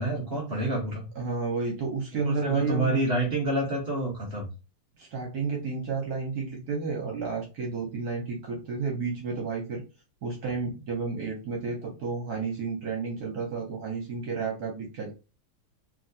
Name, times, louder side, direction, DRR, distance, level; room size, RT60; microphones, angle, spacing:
voice 1, 0.0-1.1 2.2-4.5, right 1 dB, 80° right, -3 dB, 0.5 m, -28 dB
voice 2, 1.2-3.0 5.0-9.8 10.2-15.1, right 4 dB, 60° right, 0 dB, 1.0 m, -31 dB
3.1 x 2.9 x 2.6 m, 0.30 s
omnidirectional pair, 2.2 m